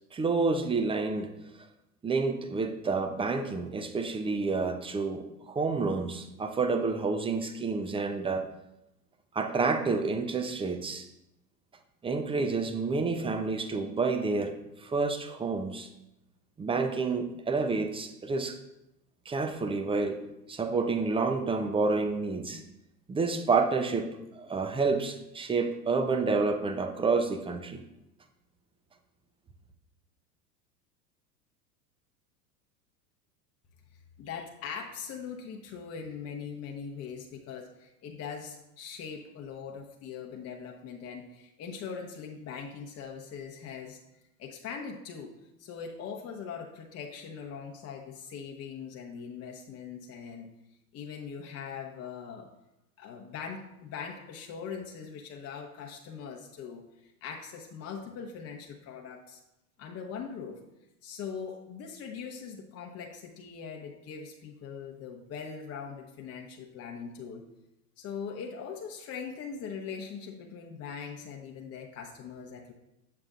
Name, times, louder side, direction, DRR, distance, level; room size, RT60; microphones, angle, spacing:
voice 1, 0.1-1.3 2.0-8.4 9.3-11.1 12.0-14.5 14.8-15.9 16.6-18.6 19.3-20.2 20.5-22.6 23.1-27.8, right 4 dB, 10° right, 6 dB, 0.4 m, -29 dB
voice 2, 34.2-44.0 44.4-45.3 45.6-50.5 50.9-52.5 53.0-59.4 59.8-60.6 61.0-67.4 68.0-72.7, left 6 dB, 30° left, 1 dB, 0.8 m, -41 dB
7.5 x 6.6 x 2.5 m, 0.88 s
hypercardioid pair, 90°, 47 cm